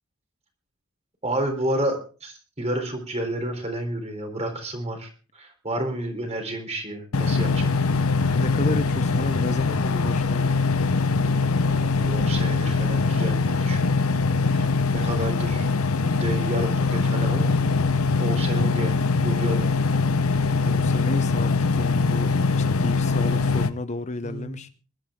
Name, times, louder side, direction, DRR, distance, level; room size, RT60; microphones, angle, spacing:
voice 1, 1.2-5.1 5.3-7.7 11.5-13.9 14.5-15.7 16.1-17.5 18.2-19.8 24.2-24.6, right 1 dB, 30° right, 3.7 m, -31 dB
sound 1, 7.1-23.7, left 4 dB, 85° left, 1.0 m, -22 dB
voice 2, 8.3-10.6 20.6-24.7, left 3 dB, 30° left, 0.6 m, -31 dB
21.5 x 12.0 x 3.7 m
head